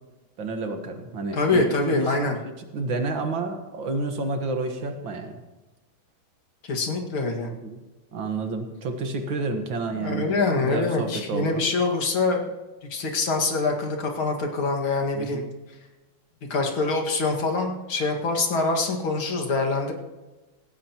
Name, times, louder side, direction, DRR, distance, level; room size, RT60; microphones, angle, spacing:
voice 1, 0.4-2.2 2.7-5.4 7.4-7.8 8.1-11.6 15.1-15.5, right 3 dB, 65° right, 5 dB, 2.2 m, -30 dB
voice 2, 1.3-2.4 6.6-7.5 9.9-12.4 12.9-15.5 16.5-19.9, left 3 dB, 75° left, 1 dB, 2.8 m, -25 dB
17.5 x 16.5 x 3.0 m, 1.2 s
omnidirectional pair, 2.3 m